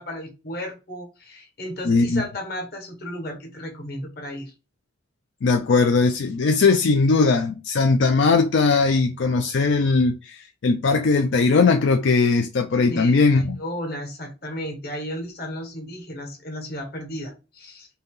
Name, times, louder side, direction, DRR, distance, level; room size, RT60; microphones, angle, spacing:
voice 1, 0.0-4.5 12.9-17.9, equal, 55° left, 1.3 m, -34 dB
voice 2, 1.8-2.2 5.4-13.6, left 4 dB, 80° left, 0.4 m, -19 dB
4.0 x 2.8 x 3.7 m
head